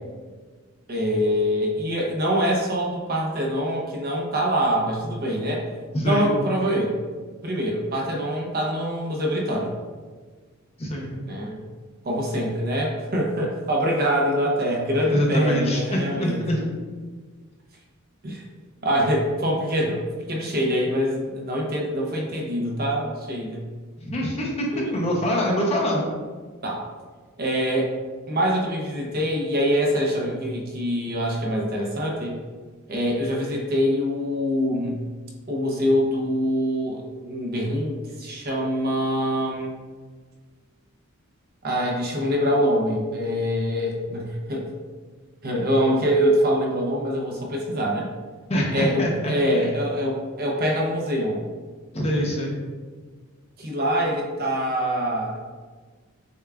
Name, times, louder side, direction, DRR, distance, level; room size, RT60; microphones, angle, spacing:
voice 1, 0.9-5.7 6.0-6.9 7.4-9.7 11.3-11.6 12.0-16.7 18.2-18.4 18.8-23.6 24.7-25.1 26.6-26.8 27.4-27.9 28.3-32.4 32.9-35.0 35.5-39.8 41.6-44.7 45.4-48.1 48.7-51.4 53.6-55.4, equal, 45° right, -1 dB, 0.6 m, -24 dB
voice 2, 5.9-6.3 10.8-11.1 15.1-16.6 24.0-26.0 48.5-49.6 51.9-52.6, equal, 30° left, -2 dB, 0.6 m, -24 dB
6.5 x 2.3 x 2.3 m, 1.4 s
head